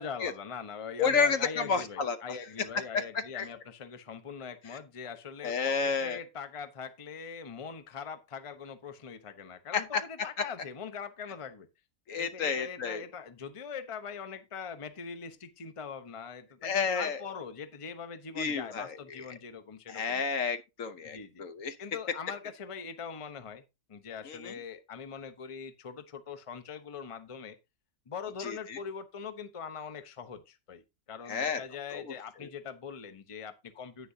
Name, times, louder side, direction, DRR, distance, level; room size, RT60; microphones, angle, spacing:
voice 1, 0.0-11.7 12.2-20.3 21.0-21.4 21.8-23.6 23.9-27.6 28.1-30.8 31.1-34.1, left 6 dB, 25° left, 0.7 m, -42 dB
voice 2, 1.0-2.4 2.9-3.0 3.3-3.4 5.4-6.2 9.7-10.0 12.1-13.0 16.6-17.2 18.4-19.0 19.9-21.7 24.3-24.5 28.4-28.8 31.3-31.6 31.9-32.0, left 5 dB, 60° left, 1.1 m, -30 dB
10.0 x 9.2 x 2.8 m
omnidirectional pair, 1.7 m